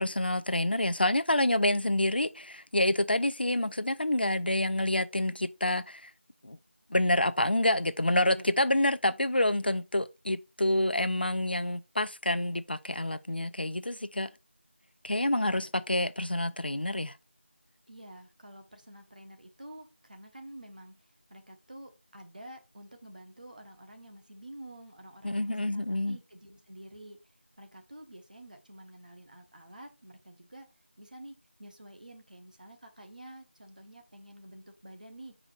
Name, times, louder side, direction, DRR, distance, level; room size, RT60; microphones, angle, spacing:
voice 1, 0.0-6.1 6.4-6.6 6.9-14.3 15.0-17.1 25.2-26.2, left 1 dB, 50° left, 0.5 m, -28 dB
voice 2, 8.3-8.9 15.4-15.7 17.9-35.4, right 1 dB, 40° right, 1.1 m, -49 dB
6.0 x 5.0 x 4.3 m
figure-of-eight pair, 175°, 7 cm